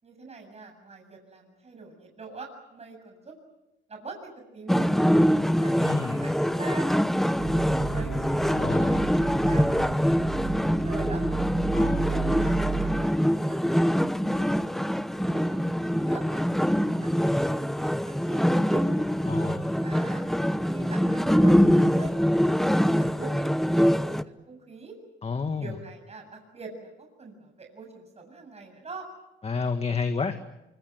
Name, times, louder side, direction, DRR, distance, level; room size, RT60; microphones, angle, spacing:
voice 1, 0.0-3.4 3.9-4.9 5.5-8.2 8.6-9.9 10.3-11.2 12.0-14.4 15.3-16.5 16.7-18.8 19.8-20.2 20.7-21.6 21.9-23.5 23.9-25.0 25.6-29.1, right 4 dB, 30° right, 3 dB, 7.6 m, -44 dB
sound 1, 4.7-24.2, equal, ahead, 1.0 m, -24 dB
voice 2, 5.8-6.2 8.5-9.0 11.7-12.1 19.3-19.7 25.2-25.7 29.4-30.4, left 5 dB, 30° left, 8 dB, 1.8 m, -30 dB
sound 2, 7.3-13.1, right 6 dB, 60° right, 3.1 m, -34 dB
25.0 x 25.0 x 8.1 m, 0.93 s
cardioid pair, 90°, 20 cm